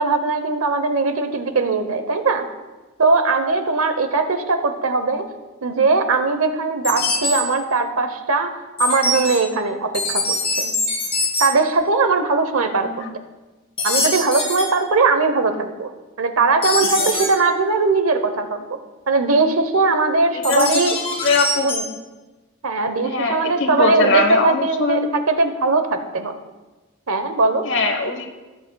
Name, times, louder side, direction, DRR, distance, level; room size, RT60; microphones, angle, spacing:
voice 1, 0.0-2.5 3.0-5.2 5.6-8.5 8.8-10.7 11.4-12.9 13.8-15.9 16.2-18.6 19.1-21.0 21.6-21.8 22.6-25.0 25.3-26.3 27.1-27.6, right 3 dB, 90° right, 8 dB, 0.9 m, -20 dB
sound 1, 6.8-7.4 8.8-9.4 9.9-11.5 13.8-14.6 16.6-17.3 20.4-21.8, left 2 dB, 30° left, 2.6 m, -22 dB
voice 2, 20.3-20.8 21.2-21.7 23.0-25.2 27.6-28.3, left 3 dB, 60° left, 5 dB, 1.1 m, -21 dB
18.0 x 7.6 x 2.3 m, 1.2 s
head